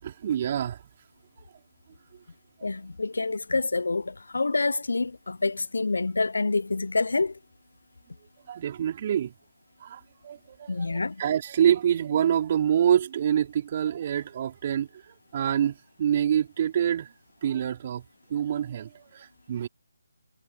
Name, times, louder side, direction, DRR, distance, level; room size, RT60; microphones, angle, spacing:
voice 1, 0.0-0.8 8.5-9.3 9.8-14.9 15.3-17.1 17.4-18.0 18.3-19.7, right 9 dB, 35° right, 4.3 m, -26 dB
voice 2, 2.6-7.3 10.7-11.1, left 3 dB, 75° left, 0.5 m, -27 dB
figure-of-eight pair, 155°, 0 cm